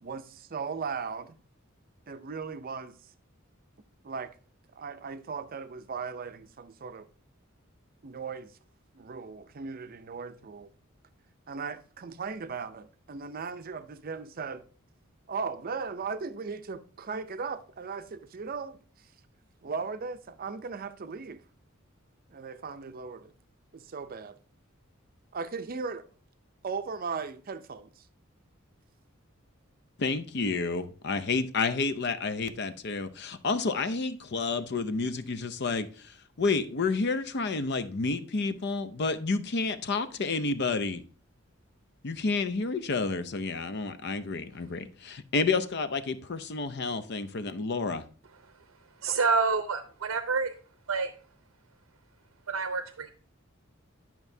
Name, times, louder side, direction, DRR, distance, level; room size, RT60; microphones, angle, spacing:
voice 1, 0.0-1.3 2.1-3.0 4.0-4.3 4.7-7.1 8.0-8.5 8.9-10.7 11.5-14.6 15.3-18.8 19.6-21.4 22.3-23.3 23.7-24.4 25.3-26.0 26.6-28.1, right 5 dB, 45° right, 0.5 m, -37 dB
voice 2, 30.0-35.9 36.4-41.0 42.0-48.0, left 4 dB, 55° left, 0.6 m, -30 dB
voice 3, 49.0-50.5 50.9-51.1 52.5-53.1, right 4 dB, 85° right, 0.6 m, -28 dB
11.0 x 5.9 x 2.7 m
head